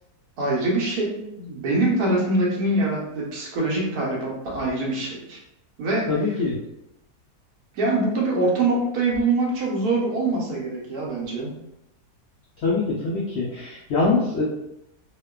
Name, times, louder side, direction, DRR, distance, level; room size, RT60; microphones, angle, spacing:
voice 1, 0.4-5.4 5.8-6.1 7.7-11.5, right 2 dB, 75° right, -3 dB, 1.2 m, -24 dB
voice 2, 6.1-6.5 12.6-14.4, left 3 dB, 85° left, -4 dB, 0.5 m, -23 dB
2.8 x 2.1 x 2.2 m, 0.87 s
omnidirectional pair, 1.7 m